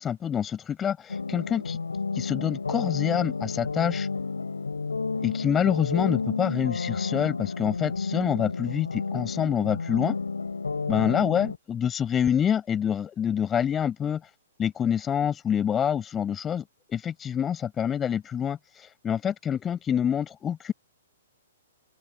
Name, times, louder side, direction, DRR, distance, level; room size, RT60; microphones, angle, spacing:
voice 1, 0.0-1.8 2.1-4.1 5.2-10.2 10.9-14.2 14.6-20.7, left 8 dB, 20° left, 7.6 m, -27 dB
sound 1, 1.1-11.6, left 4 dB, 85° left, 7.4 m, -31 dB
hypercardioid pair, 125°, 0 cm